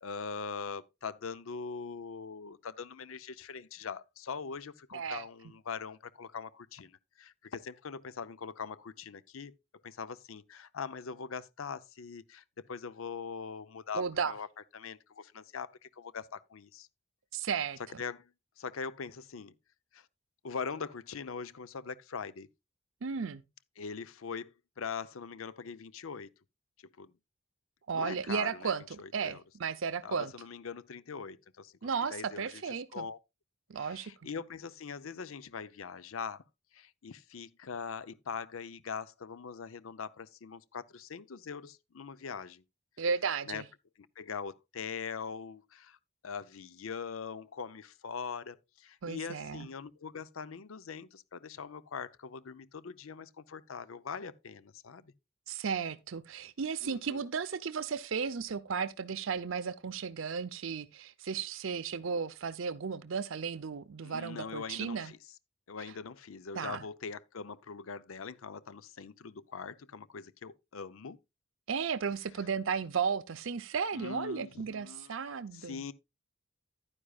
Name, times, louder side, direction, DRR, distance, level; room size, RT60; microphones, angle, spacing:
voice 1, 0.0-9.5 9.8-14.5 14.7-16.9 18.0-18.3 18.6-19.5 19.9-20.1 20.4-22.5 23.8-26.3 27.0-27.1 27.9-29.4 30.0-31.7 32.1-33.2 33.8-36.4 36.7-42.6 43.5-43.6 44.2-46.0 46.2-55.1 56.8-57.2 64.0-65.2 65.7-71.2 73.9-75.1 75.5-75.9, left 5 dB, 80° left, 0.6 m, -42 dB
voice 2, 4.9-5.3 13.9-14.3 17.3-17.8 23.0-23.4 27.9-30.3 31.8-33.0 33.7-34.1 43.0-43.6 49.0-49.7 55.5-65.1 66.6-66.8 71.7-75.8, right 6 dB, 70° right, 0.6 m, -34 dB
11.5 x 9.8 x 2.3 m
head